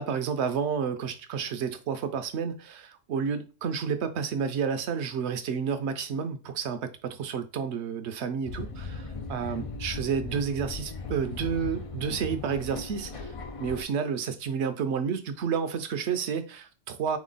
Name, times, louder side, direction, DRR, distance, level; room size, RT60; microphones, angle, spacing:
voice 1, 0.0-9.0 9.3-13.3 13.6-17.2, right 6 dB, 75° right, 0.9 m, -30 dB
sound 1, 8.5-13.8, left 4 dB, 60° left, 0.3 m, -38 dB
3.8 x 3.0 x 3.9 m
omnidirectional pair, 1.2 m